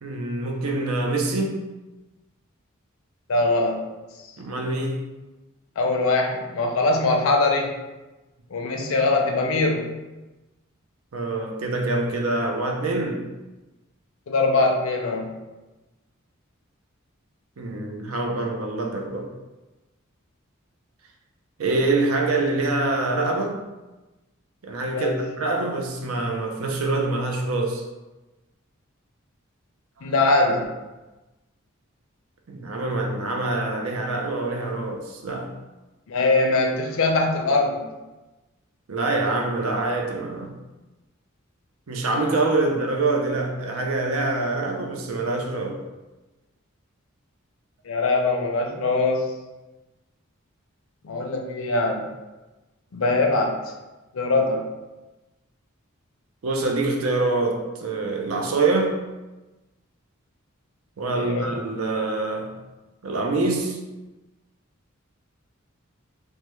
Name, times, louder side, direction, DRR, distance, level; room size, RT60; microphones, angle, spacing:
voice 1, 0.0-1.6 4.4-5.1 11.1-13.2 17.6-19.3 21.6-23.6 24.6-27.8 32.5-35.5 38.9-40.6 41.9-45.8 56.4-59.0 61.0-62.6 63.0-63.8, right 2 dB, 80° right, 2 dB, 0.5 m, -25 dB
voice 2, 3.3-3.8 5.8-7.7 8.5-9.9 14.3-15.3 24.9-25.2 30.0-30.8 36.1-37.8 47.9-49.2 51.0-52.1 52.9-53.5 54.1-54.6 61.1-61.5, left 2 dB, 70° left, 2 dB, 0.5 m, -22 dB
3.3 x 2.1 x 3.0 m, 1.1 s
head